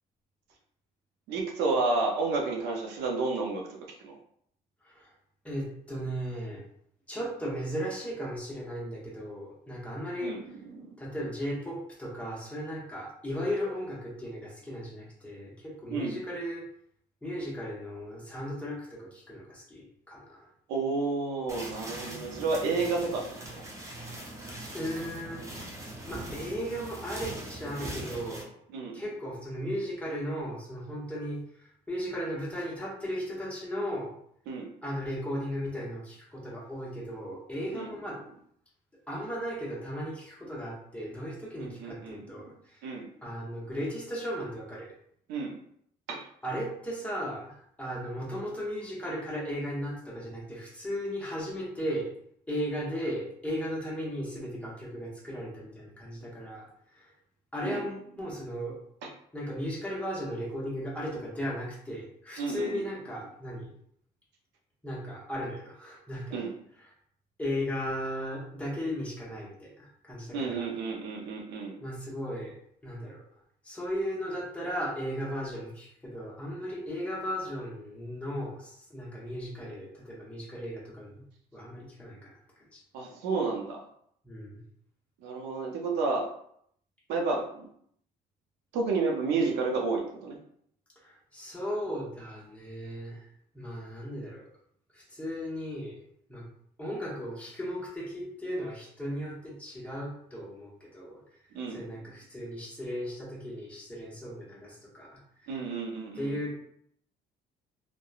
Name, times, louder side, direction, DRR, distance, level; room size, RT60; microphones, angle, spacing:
voice 1, 1.3-3.7 4.0-4.1 10.2-10.4 10.8-10.9 15.9-16.1 20.7-23.6 28.7-29.0 34.5-34.7 37.7-37.9 41.6-42.2 42.8-43.1 45.3-45.5 46.1-46.2 57.6-57.8 62.4-62.8 66.3-66.5 70.3-71.8 82.9-83.8 85.2-86.3 87.1-87.7 88.7-90.4 101.5-101.8 105.5-106.3, right 3 dB, 90° right, 0 dB, 0.6 m, -31 dB
voice 2, 4.8-5.1 5.4-6.6 7.1-10.6 11.0-16.7 17.2-20.5 24.6-28.5 28.9-34.1 34.8-38.2 39.1-42.9 43.2-45.0 46.4-52.1 52.5-57.1 57.5-58.8 59.3-63.7 64.8-66.4 67.4-70.7 71.8-72.6 72.8-73.3 73.6-81.2 81.5-82.8 84.2-84.6 91.0-93.3 93.5-94.5 94.9-96.0 96.3-96.5 96.8-101.2 101.7-105.6 106.1-106.6, equal, 10° left, -4 dB, 0.9 m, -36 dB
sound 1, 21.5-28.4, right 1 dB, 20° right, 0.6 m, -41 dB
2.8 x 2.1 x 2.4 m, 0.68 s
cardioid pair, 110°, 17 cm